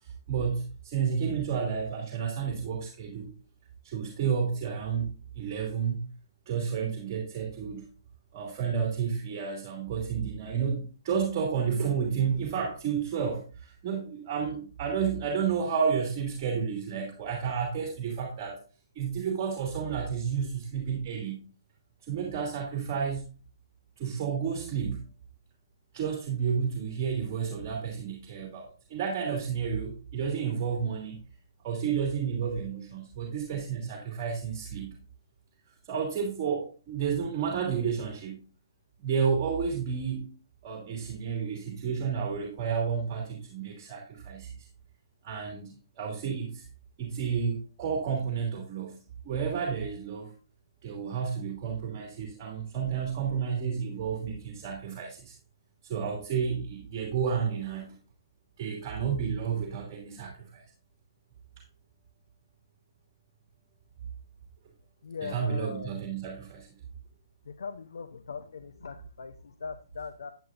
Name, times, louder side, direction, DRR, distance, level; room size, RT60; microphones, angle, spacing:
voice 1, 0.0-3.3 3.8-5.1 5.3-6.1 6.5-7.9 8.3-18.6 18.9-21.4 22.0-23.3 24.0-25.0 25.9-31.2 31.6-34.9 35.9-38.4 39.0-40.3 40.6-44.5 45.2-46.7 47.0-49.0 49.2-50.3 50.8-55.3 55.8-57.9 58.6-60.6 65.2-66.7, right 6 dB, 35° right, 1 dB, 2.8 m, -31 dB
voice 2, 65.0-65.9 67.5-70.3, left 5 dB, 70° left, 8 dB, 0.9 m, -40 dB
11.0 x 9.1 x 2.6 m, 0.35 s
figure-of-eight pair, 130°, 2 cm